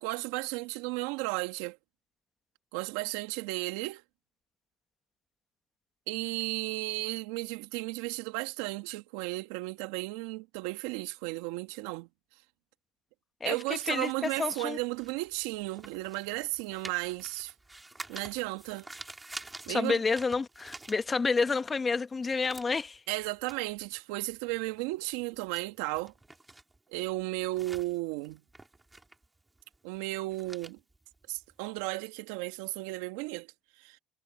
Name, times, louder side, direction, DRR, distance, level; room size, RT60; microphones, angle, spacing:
voice 1, 0.0-1.8 2.7-4.0 6.1-12.1 13.5-17.5 18.1-18.9 19.7-20.0 23.1-26.1 26.9-28.4 29.8-30.8 31.3-33.5 33.8-34.0, right 21 dB, 80° right, 1.9 m, -34 dB
sound 1, 13.8-21.6 21.9-32.0, right 2 dB, 15° right, 3.7 m, -49 dB
voice 2, 13.9-14.8 19.7-23.0, left 4 dB, 25° left, 1.3 m, -29 dB
supercardioid pair, 90°, 0 cm